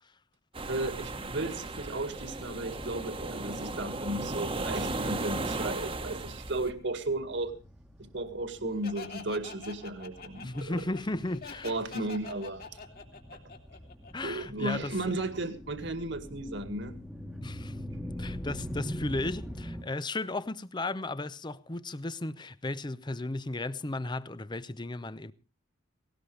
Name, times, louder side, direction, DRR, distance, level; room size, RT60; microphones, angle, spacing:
sound 1, 0.5-6.7, right 2 dB, 25° right, 1.3 m, -36 dB
voice 1, 0.7-7.5 8.1-10.8 11.6-12.6 14.2-17.0, right 2 dB, 60° right, 2.0 m, -34 dB
sound 2, 5.8-19.8, equal, ahead, 1.3 m, -44 dB
Laughter, 8.8-14.5, left 4 dB, 50° left, 2.8 m, -45 dB
voice 2, 10.4-11.7 14.1-14.9 17.4-17.8 18.2-25.3, left 2 dB, 20° left, 0.7 m, -35 dB
18.5 x 18.0 x 3.3 m
head